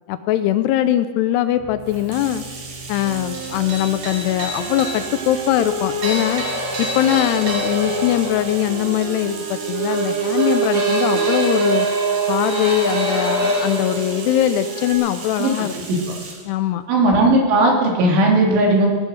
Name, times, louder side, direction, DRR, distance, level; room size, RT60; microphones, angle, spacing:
voice 1, 0.1-2.4 2.9-6.4 6.8-11.9 12.3-15.7 16.5-16.8, left 12 dB, 80° left, 11 dB, 2.4 m, -21 dB
sound 1, 1.6-14.9, right 3 dB, 35° right, 3.2 m, -25 dB
Bathtub (filling or washing), 1.8-16.5, right 4 dB, 50° right, 3.6 m, -37 dB
Wind instrument woodwind instrument, 3.0-11.0, right 2 dB, 70° right, 3.7 m, -34 dB
voice 2, 16.9-18.9, right 2 dB, 90° right, 0 dB, 5.2 m, -16 dB
19.0 x 12.0 x 6.4 m, 1.5 s
omnidirectional pair, 5.3 m